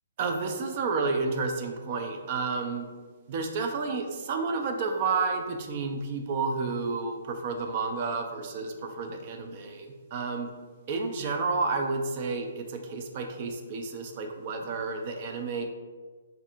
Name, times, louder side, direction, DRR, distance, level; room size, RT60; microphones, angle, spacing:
voice 1, 0.2-2.9 3.3-10.5 10.9-15.7, right 4 dB, 30° right, 4 dB, 0.4 m, -31 dB
3.3 x 2.5 x 4.2 m, 1.4 s
hypercardioid pair, 170°, 0 cm